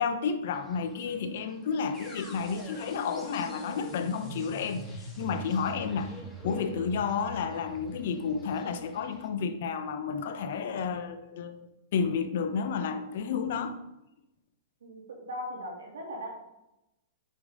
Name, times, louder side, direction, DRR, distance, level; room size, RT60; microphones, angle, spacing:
voice 1, 0.0-6.1 6.4-13.8, left 6 dB, 60° left, 0.9 m, -31 dB
Fowl, 0.5-9.3, left 1 dB, 5° left, 1.8 m, -54 dB
sound 1, 1.9-9.9, equal, 20° left, 3.0 m, -44 dB
voice 2, 14.8-16.3, equal, 75° right, 3.0 m, -39 dB
9.2 x 5.5 x 3.8 m
hypercardioid pair, 110°, 0 cm